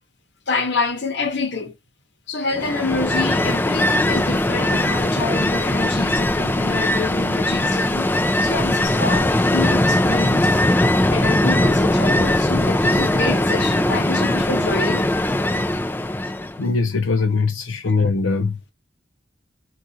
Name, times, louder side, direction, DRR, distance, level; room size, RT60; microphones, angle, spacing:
voice 1, 0.5-1.8 2.3-8.1 8.4-10.5 11.1-15.1 15.5-15.6 17.8-18.0, left 3 dB, 60° left, 0.9 m, -27 dB
Ocean, 2.5-16.6, left 1 dB, 10° left, 0.3 m, -20 dB
voice 2, 16.6-18.7, left 4 dB, 85° left, 0.6 m, -21 dB
3.8 x 2.3 x 2.7 m
head